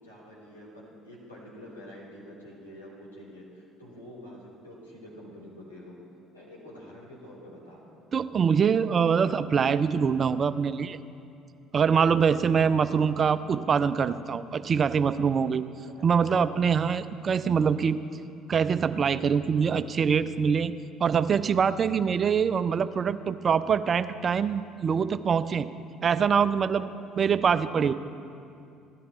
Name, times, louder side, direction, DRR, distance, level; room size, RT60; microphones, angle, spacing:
voice 1, 0.0-5.9 6.3-8.0 12.6-13.2 15.9-16.1, equal, 85° left, -6 dB, 3.2 m, -47 dB
voice 2, 8.1-11.0 11.7-15.6 16.0-18.0 18.5-20.7 21.0-25.7 26.0-26.9 27.1-27.9, right 6 dB, 40° right, 15 dB, 0.5 m, -24 dB
16.5 x 13.0 x 4.2 m, 2.5 s
figure-of-eight pair, 55°, 0 cm